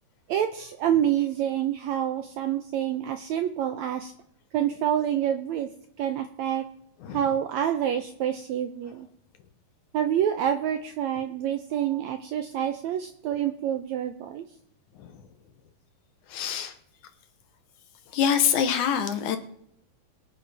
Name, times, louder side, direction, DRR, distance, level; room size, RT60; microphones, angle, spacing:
voice 1, 0.3-4.1 4.5-5.7 6.0-6.6 7.1-9.1 9.9-14.4, right 10 dB, 80° right, 7 dB, 1.6 m, -27 dB
voice 2, 16.3-16.8 18.1-19.4, left 8 dB, 70° left, 8 dB, 2.2 m, -25 dB
23.5 x 8.9 x 3.4 m, 0.74 s
omnidirectional pair, 4.0 m